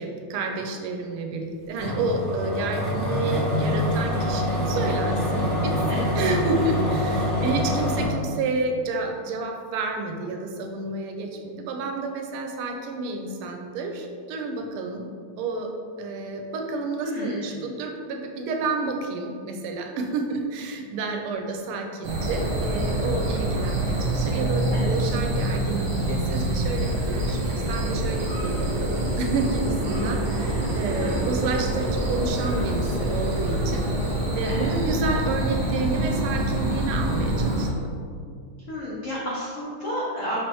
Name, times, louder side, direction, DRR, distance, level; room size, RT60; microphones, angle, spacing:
voice 1, 0.0-15.1 15.4-15.7 16.0-27.4 27.7-33.8 34.4-38.0, right 3 dB, 80° right, 3 dB, 1.4 m, -30 dB
sound 1, 1.8-8.0, left 1 dB, ahead, 0.9 m, -25 dB
voice 2, 17.0-17.6 24.7-25.2 31.0-31.4 34.4-34.8 38.7-40.4, equal, 75° left, -7 dB, 0.7 m, -32 dB
sound 2, 22.0-37.7, right 1 dB, 45° right, 0.8 m, -26 dB
5.6 x 3.2 x 3.0 m, 2.2 s
omnidirectional pair, 2.4 m